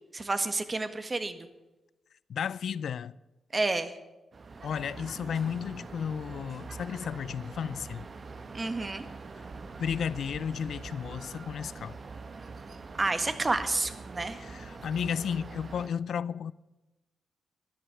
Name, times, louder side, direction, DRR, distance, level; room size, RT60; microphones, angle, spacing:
voice 1, 0.1-1.5 3.5-3.9 8.5-9.1 13.0-14.4, right 3 dB, 35° right, 1.7 m, -30 dB
voice 2, 2.3-3.2 4.6-8.1 9.8-11.9 14.4-16.5, left 7 dB, 70° left, 0.4 m, -33 dB
sound 1, 4.3-15.9, right 4 dB, 50° right, 1.3 m, -44 dB
14.5 x 11.0 x 7.1 m
supercardioid pair, 50°, 0 cm